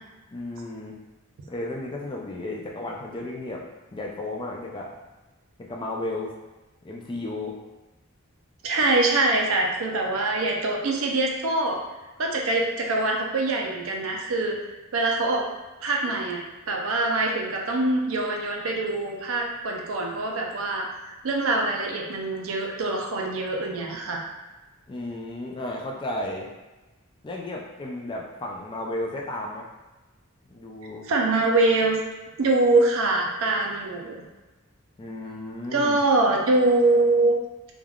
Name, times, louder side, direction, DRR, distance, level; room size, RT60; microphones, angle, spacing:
voice 1, 0.3-1.0 1.5-4.9 5.6-6.3 6.8-7.6 24.9-26.5 27.2-29.7 30.5-31.1 35.0-36.0, left 2 dB, 25° left, -1 dB, 0.3 m, -33 dB
voice 2, 8.6-11.8 12.2-14.6 14.9-15.5 15.8-16.4 16.7-24.3 31.0-32.0 32.4-34.3 35.7-37.4, right 2 dB, 75° right, 0 dB, 0.5 m, -24 dB
3.4 x 2.3 x 2.3 m, 1.1 s
head